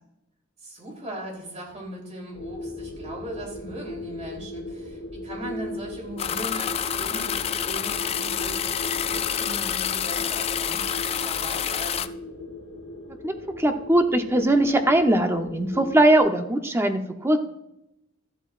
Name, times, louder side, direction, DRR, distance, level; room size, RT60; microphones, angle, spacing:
voice 1, 0.6-12.0, right 1 dB, 35° right, -1 dB, 3.3 m, -39 dB
sound 1, 2.3-16.2, left 1 dB, 85° left, 3.3 m, -38 dB
sound 2, 6.2-12.1, left 9 dB, 30° left, 0.3 m, -28 dB
voice 2, 13.2-17.4, right 1 dB, 15° right, 5 dB, 0.8 m, -21 dB
13.5 x 12.0 x 2.5 m, 0.86 s
head